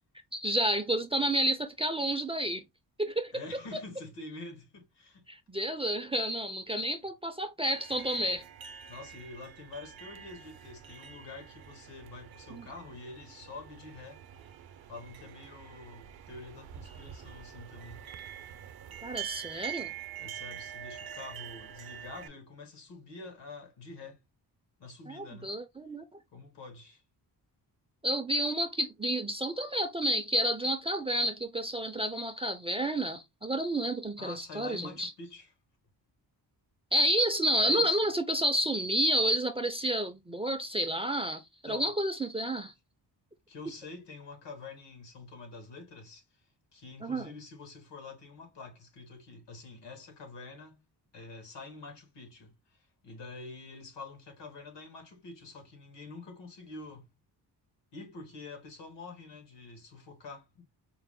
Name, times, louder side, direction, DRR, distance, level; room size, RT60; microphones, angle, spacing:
voice 1, 0.3-2.6 3.0-3.3 5.3-8.4 12.5-12.6 19.0-19.9 25.1-26.0 28.0-35.1 36.9-42.7 47.0-47.3, right 1 dB, 15° right, 0.4 m, -30 dB
voice 2, 3.3-5.2 6.9-7.0 8.9-14.2 14.9-18.0 20.2-24.2 24.8-25.5 26.3-27.0 34.2-35.5 37.6-38.0 41.7-41.9 43.5-50.8 51.1-57.1 57.9-60.6, left 3 dB, 80° left, 1.5 m, -46 dB
sound 1, 7.6-22.3, right 10 dB, 60° right, 0.6 m, -45 dB
4.7 x 2.1 x 3.4 m
wide cardioid pair, 125°, 41 cm